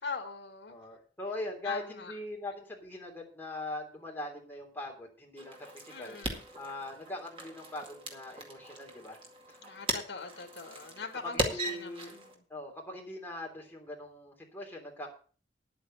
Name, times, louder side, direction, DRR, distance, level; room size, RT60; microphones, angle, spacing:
voice 1, 0.0-0.8 1.6-2.1 5.9-6.4 9.6-12.4, left 4 dB, 70° left, 5 dB, 2.1 m, -42 dB
voice 2, 0.7-6.2 6.6-9.2 9.5-9.6 10.8-12.1 12.5-15.1, left 2 dB, 10° left, -1 dB, 3.2 m, -41 dB
sound 1, 5.4-12.4, right 2 dB, 30° right, 2.1 m, -39 dB
10.5 x 8.4 x 6.6 m, 0.40 s
head